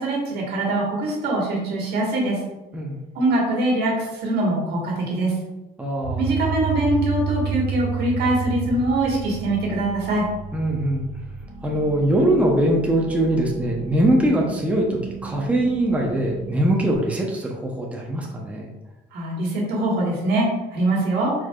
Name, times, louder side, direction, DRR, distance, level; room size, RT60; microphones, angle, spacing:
voice 1, 0.0-2.4 3.1-5.3 6.2-10.3 19.1-21.3, right 1 dB, 75° right, -2 dB, 1.5 m, -23 dB
voice 2, 5.8-6.2 10.5-11.0 11.6-18.7, right 1 dB, 10° right, -1 dB, 0.8 m, -22 dB
sound 1, 6.0-16.9, right 6 dB, 40° right, 0.5 m, -32 dB
4.5 x 4.5 x 2.4 m, 1.0 s
cardioid pair, 110°, 17 cm